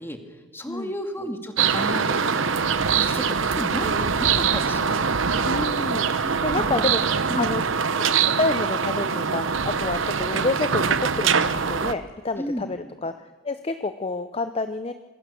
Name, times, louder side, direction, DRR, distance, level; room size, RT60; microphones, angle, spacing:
voice 1, 0.0-2.0 2.3-2.6 2.9-4.9 6.2-6.9 7.3-7.5 12.4-12.7, equal, 10° left, 5 dB, 2.3 m, -33 dB
sound 1, 1.6-11.9, right 6 dB, 65° right, 1.0 m, -23 dB
voice 2, 5.4-7.0 7.4-7.6 8.0-14.9, left 3 dB, 30° left, 10 dB, 0.7 m, -29 dB
26.5 x 20.0 x 7.0 m, 1.3 s
head